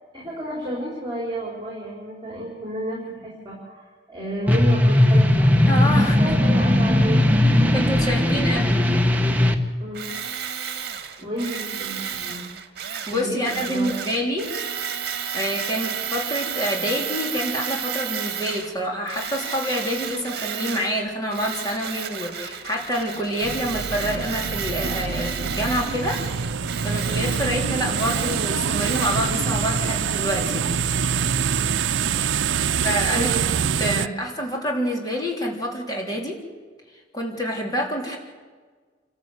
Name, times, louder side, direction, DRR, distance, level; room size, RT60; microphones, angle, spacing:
voice 1, 0.1-5.5 6.0-7.2 8.3-8.6 9.8-10.2 11.2-12.5 13.1-13.9 33.1-33.5 33.9-34.1, right 1 dB, 25° right, -3 dB, 4.7 m, -31 dB
sound 1, 4.5-9.5, left 1 dB, 10° right, 1.2 m, -18 dB
voice 2, 5.7-6.2 7.7-8.9 11.2-11.3 13.1-14.5 15.3-26.2 26.8-30.7 32.8-33.3 33.8-36.4 37.1-38.2, equal, 20° left, -1 dB, 3.7 m, -27 dB
Tools, 9.9-18.7 19.1-21.0 21.3-29.4, right 8 dB, 55° right, 1.7 m, -32 dB
sound 2, 23.4-34.1, right 6 dB, 90° right, 0.6 m, -25 dB
28.0 x 13.5 x 8.2 m, 1.5 s
head